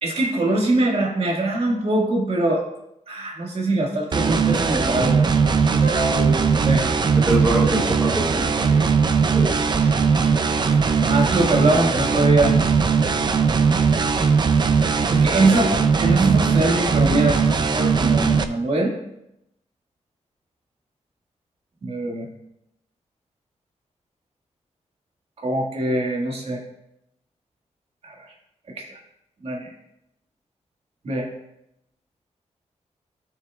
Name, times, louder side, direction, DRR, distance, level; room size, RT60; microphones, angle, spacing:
voice 1, 0.0-2.6 3.1-5.3 5.8-6.9 11.0-12.6 15.1-15.6 16.0-18.9 21.8-22.3 25.4-26.6 28.0-28.3 28.8-28.9 29.4-29.7 31.0-31.3, right 2 dB, 55° right, -1 dB, 2.0 m, -22 dB
sound 1, 4.1-18.4, right 5 dB, 40° right, 0.5 m, -19 dB
voice 2, 7.3-8.9 9.3-10.0 15.4-15.6, right 1 dB, 10° right, -3 dB, 1.1 m, -26 dB
16.0 x 6.3 x 2.4 m, 0.84 s
wide cardioid pair, 170°, 12 cm